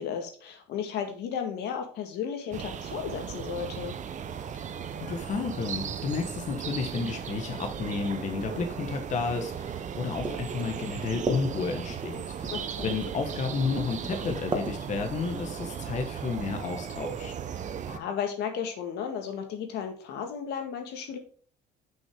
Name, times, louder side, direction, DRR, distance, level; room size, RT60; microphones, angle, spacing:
voice 1, 0.0-3.9 12.5-12.9 17.8-21.2, left 7 dB, 80° left, 5 dB, 1.7 m, -34 dB
sound 1, 2.5-18.0, right 8 dB, 45° right, 0.8 m, -37 dB
sound 2, 4.3-15.3, right 2 dB, 30° right, 1.5 m, -38 dB
voice 2, 5.0-17.3, left 4 dB, 45° left, 5 dB, 1.1 m, -32 dB
6.2 x 5.8 x 3.6 m, 0.43 s
cardioid pair, 110°, 17 cm